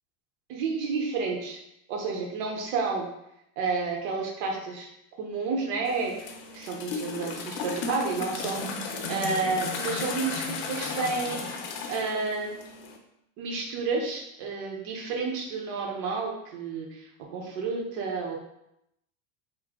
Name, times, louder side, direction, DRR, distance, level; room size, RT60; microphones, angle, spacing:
voice 1, 0.5-1.6 1.9-3.0 3.6-4.9 5.2-6.1 6.5-8.6 9.1-11.4 11.9-12.7 13.4-18.4, right 4 dB, 75° right, 0 dB, 1.0 m, -30 dB
sound 1, 5.8-13.0, left 4 dB, 90° left, 0.7 m, -35 dB
3.1 x 2.2 x 3.6 m, 0.82 s
supercardioid pair, 125°, 49 cm